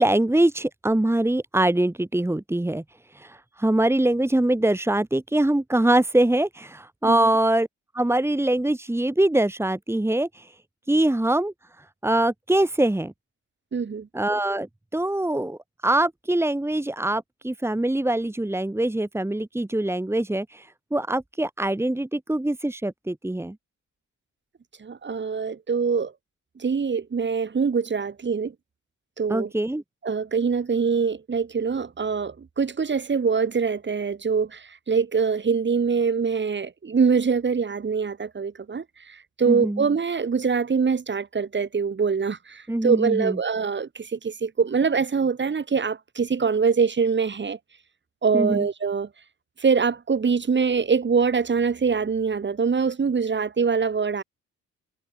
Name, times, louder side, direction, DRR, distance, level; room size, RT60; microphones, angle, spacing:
voice 1, 0.0-2.8 3.1-7.7 7.9-10.5 10.9-11.5 12.0-13.1 14.1-14.7 14.9-23.5 29.3-29.8 39.5-39.8 42.7-43.4 48.3-48.7, right 1 dB, 10° right, 3.2 m, -23 dB
voice 2, 13.7-14.1 24.8-26.1 26.6-28.5 29.2-29.5 30.0-47.6 48.2-49.1 49.6-54.2, right 5 dB, 35° right, 6.2 m, -24 dB
cardioid pair, 90°, 30 cm